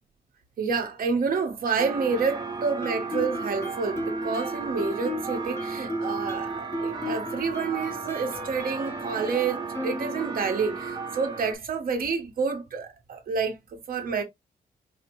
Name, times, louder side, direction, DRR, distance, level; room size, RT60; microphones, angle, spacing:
voice 1, 0.6-14.2, right 5 dB, 65° right, 1.2 m, -29 dB
sound 1, 1.8-11.5, right 4 dB, 25° right, 0.7 m, -35 dB
Guitar, 2.8-10.5, left 1 dB, 15° left, 0.9 m, -35 dB
4.8 x 2.2 x 3.0 m
wide cardioid pair, 145°, 16 cm